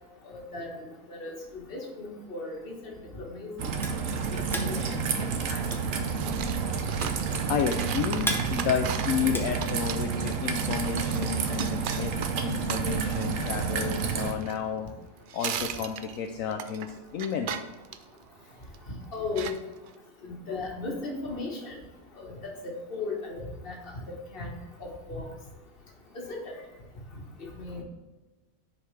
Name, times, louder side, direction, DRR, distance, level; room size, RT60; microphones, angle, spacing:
voice 1, 0.2-1.3 1.7-3.7 4.3-5.6 19.1-19.5 20.2-21.8 22.2-24.0 24.3-24.5 24.8-25.3 26.1-26.5 27.4-27.8, left 3 dB, 40° left, 0 dB, 1.6 m, -37 dB
Raindrop / Trickle dribble, 3.6-14.3, right 5 dB, 70° right, 1.2 m, -30 dB
sound 1, 3.8-10.3, equal, 5° left, 0.5 m, -37 dB
sound 2, 6.2-15.0 15.3-18.8 19.3-19.9, right 8 dB, 85° right, 0.4 m, -37 dB
voice 2, 7.5-14.9 15.3-17.7, left 7 dB, 75° left, 4 dB, 1.0 m, -31 dB
9.8 x 5.1 x 3.3 m, 1.2 s
omnidirectional pair, 1.4 m